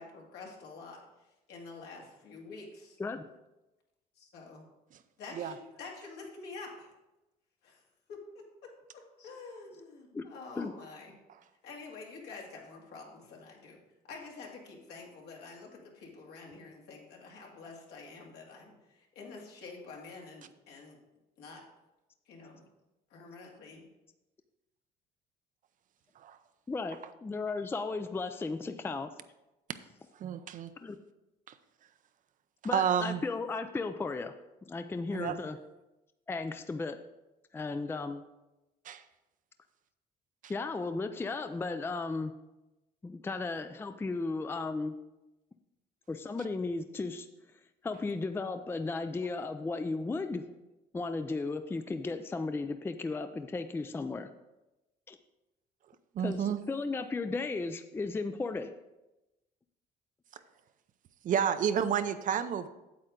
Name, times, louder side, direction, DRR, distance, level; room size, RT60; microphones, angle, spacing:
voice 1, 0.0-3.0 4.2-4.6 5.2-6.9 7.6-7.8 8.1-11.2 11.6-13.8 14.0-21.0 21.4-21.6 22.3-22.6 23.1-23.9, left 3 dB, 75° left, -1 dB, 2.3 m, -48 dB
voice 2, 26.7-29.1 30.8-31.0 32.6-34.3 34.7-35.6 36.3-37.0 37.5-38.2 40.5-42.3 43.0-44.9 46.1-47.3 47.8-50.4 50.9-54.3 55.1-55.2 56.2-58.7, left 3 dB, 15° left, 9 dB, 0.4 m, -35 dB
voice 3, 30.1-30.7 31.5-31.6 32.7-33.2 35.1-35.4 38.8-39.0 40.4-40.5 56.1-56.6 60.3-60.4 61.2-62.7, right 8 dB, 50° right, 11 dB, 0.6 m, -30 dB
8.5 x 7.7 x 3.8 m, 0.99 s
cardioid pair, 110°, 17 cm